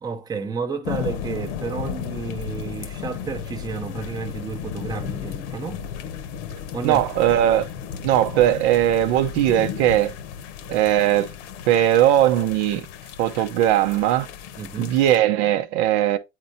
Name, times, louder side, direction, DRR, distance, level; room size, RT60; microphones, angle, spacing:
voice 1, 0.0-5.8 6.7-7.0 14.6-15.0, right 5 dB, 10° right, 0.7 m, -31 dB
sound 1, 0.8-15.2, left 8 dB, 65° left, 0.9 m, -34 dB
voice 2, 6.8-7.7 8.0-10.1 10.7-11.3 11.7-12.9 13.2-14.3 14.8-16.2, right 12 dB, 60° right, 0.7 m, -19 dB
8.2 x 4.4 x 2.6 m
supercardioid pair, 115°, 38 cm